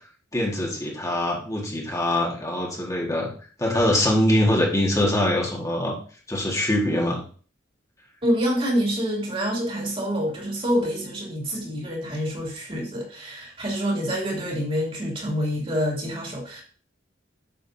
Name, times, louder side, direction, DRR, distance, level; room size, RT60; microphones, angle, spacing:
voice 1, 0.3-3.3 3.6-6.0 6.3-7.2, left 1 dB, 15° left, -2 dB, 1.8 m, -23 dB
voice 2, 8.2-16.6, equal, 30° right, -2 dB, 2.8 m, -27 dB
9.7 x 6.8 x 2.7 m, 0.41 s
head